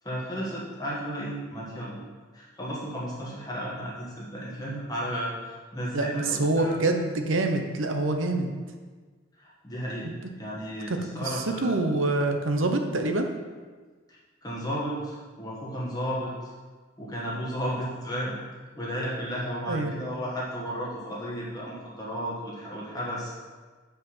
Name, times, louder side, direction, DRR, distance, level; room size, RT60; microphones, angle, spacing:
voice 1, 0.0-2.0 2.3-6.8 9.4-11.8 14.1-16.5 17.0-18.4 18.7-23.3, equal, 20° left, -6 dB, 1.5 m, -33 dB
voice 2, 5.9-8.5 10.0-10.1 10.9-11.0 11.3-13.3 19.7-19.9, right 2 dB, 75° right, 5 dB, 0.9 m, -26 dB
7.8 x 5.0 x 5.6 m, 1.4 s
head